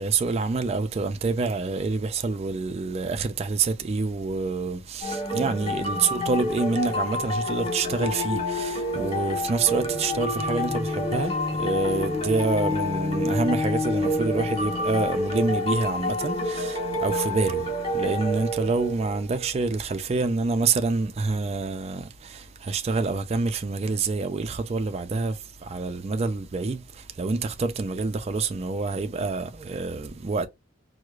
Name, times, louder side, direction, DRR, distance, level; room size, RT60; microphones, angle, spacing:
voice 1, 0.0-30.5, right 3 dB, 30° right, 0.3 m, -27 dB
sound 1, 5.0-19.5, left 1 dB, 25° left, 1.3 m, -28 dB
4.6 x 2.0 x 2.4 m
head